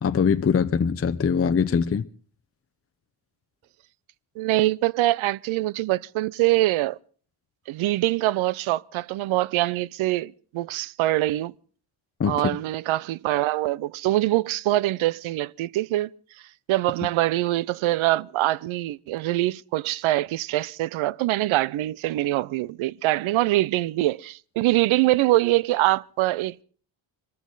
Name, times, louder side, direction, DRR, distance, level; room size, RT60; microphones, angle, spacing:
voice 1, 0.0-2.1 12.2-12.4, left 6 dB, 30° left, 0.7 m, -22 dB
voice 2, 4.4-7.0 7.7-11.5 12.3-16.1 16.7-26.6, right 16 dB, 90° right, 0.6 m, -24 dB
23.5 x 14.5 x 3.9 m
cardioid pair, 85°, 47 cm